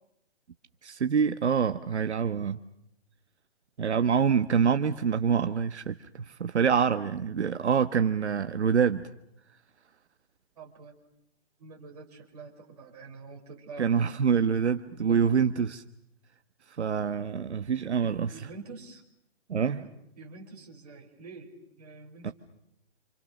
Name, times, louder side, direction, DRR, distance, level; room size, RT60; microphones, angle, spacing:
voice 1, 0.8-2.6 3.8-9.1 13.8-15.8 16.8-18.5 19.5-19.8 22.2-22.3, right 6 dB, 80° right, 9 dB, 1.4 m, -26 dB
voice 2, 10.6-11.0 11.6-14.2 14.9-15.3 18.0-19.0 19.6-19.9 20.2-21.5 21.8-22.3, right 4 dB, 35° right, 0 dB, 5.9 m, -46 dB
28.5 x 28.0 x 6.7 m, 0.79 s
hypercardioid pair, 175°, 33 cm